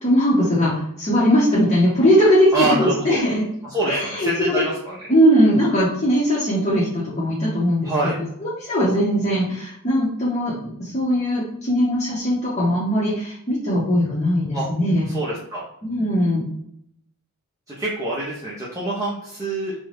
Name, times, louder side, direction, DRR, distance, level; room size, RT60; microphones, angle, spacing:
voice 1, 0.0-3.4 3.9-4.6 5.1-15.1 15.8-16.4, equal, 30° left, -8 dB, 0.7 m, -20 dB
voice 2, 2.5-3.2 3.7-5.0 7.8-8.2 14.5-14.7 15.1-15.6 17.8-19.7, right 2 dB, 15° right, -7 dB, 0.5 m, -25 dB
2.4 x 2.2 x 3.3 m, 0.73 s
head